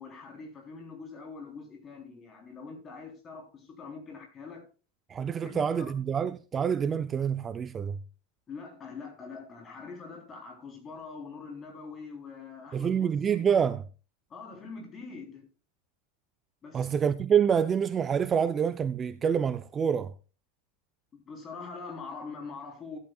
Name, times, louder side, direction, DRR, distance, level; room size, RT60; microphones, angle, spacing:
voice 1, 0.0-4.7 5.4-5.9 8.5-13.4 14.3-15.5 16.6-16.9 21.1-23.0, left 4 dB, 20° left, 3.4 m, -43 dB
voice 2, 5.1-8.0 12.7-13.8 16.7-20.1, right 7 dB, 20° right, 0.4 m, -27 dB
13.5 x 12.0 x 2.3 m
supercardioid pair, 165°, 0 cm